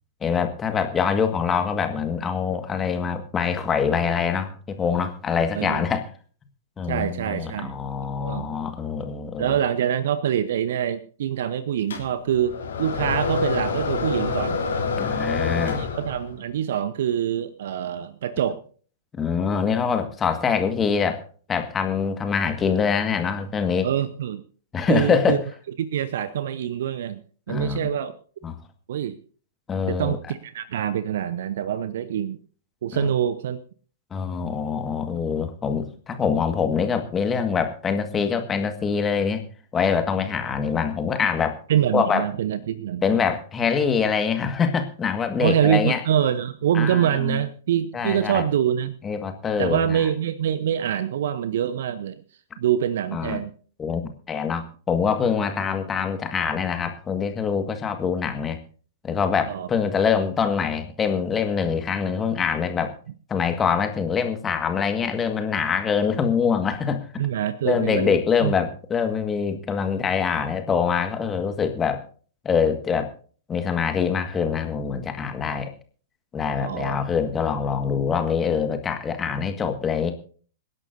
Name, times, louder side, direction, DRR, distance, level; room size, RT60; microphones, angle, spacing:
voice 1, 0.2-6.1 6.8-9.6 15.0-15.9 19.1-23.9 24.7-25.4 27.5-27.9 28.4-28.6 29.7-30.2 32.9-33.1 34.1-39.4 39.7-41.6 41.9-42.3 43.0-46.0 46.7-47.4 47.9-48.4 49.0-50.1 53.1-53.4 53.8-58.6 59.0-63.0 63.3-67.1 67.6-72.0 72.5-73.1 73.5-75.7 76.3-80.1, left 6 dB, 20° left, 7 dB, 1.7 m, -24 dB
voice 2, 5.5-5.9 6.9-7.7 8.2-8.5 9.4-14.6 15.8-18.6 23.8-24.4 24.9-25.4 25.8-28.1 28.9-29.2 29.9-32.4 32.8-33.6 41.7-43.2 45.4-49.0 49.6-52.2 52.6-53.5 59.5-59.7 67.2-68.5 76.6-77.0, right 10 dB, 55° right, 15 dB, 0.8 m, -25 dB
sound 1, 11.9-16.4, left 5 dB, 65° left, 3.5 m, -27 dB
26.5 x 11.0 x 2.7 m, 0.43 s
figure-of-eight pair, 105°, 0 cm